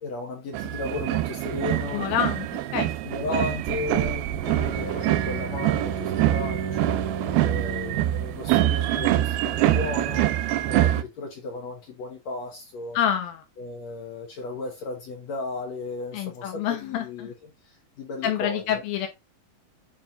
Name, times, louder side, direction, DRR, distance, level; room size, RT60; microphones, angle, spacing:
voice 1, 0.0-2.0 3.0-7.0 7.4-10.3 10.7-13.0 13.6-17.3 17.7-18.8, left 3 dB, 60° left, 2.0 m, -35 dB
sound 1, 0.5-11.0, right 14 dB, 85° right, 2.5 m, -25 dB
voice 2, 1.9-2.5 2.7-2.9 12.9-13.4 16.1-17.3 18.2-19.1, left 10 dB, 80° left, 2.7 m, -27 dB
Bowed string instrument, 4.4-8.4, right 5 dB, 5° left, 2.1 m, -33 dB
8.9 x 4.4 x 2.6 m
omnidirectional pair, 4.3 m